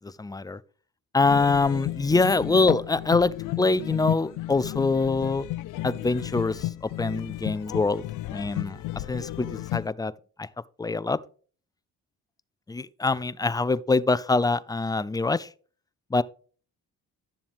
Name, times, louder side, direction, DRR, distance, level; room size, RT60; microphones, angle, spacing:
voice 1, 0.2-0.6 1.1-5.5 5.8-6.7 7.0-8.0 8.3-8.8 9.1-10.1 10.4-10.5 10.8-11.2 12.7-15.5 16.1-16.2, left 3 dB, 10° left, 0.5 m, -24 dB
sound 1, 1.2-9.9, left 16 dB, 85° left, 0.6 m, -33 dB
12.0 x 7.2 x 3.6 m
cardioid pair, 90°, 30 cm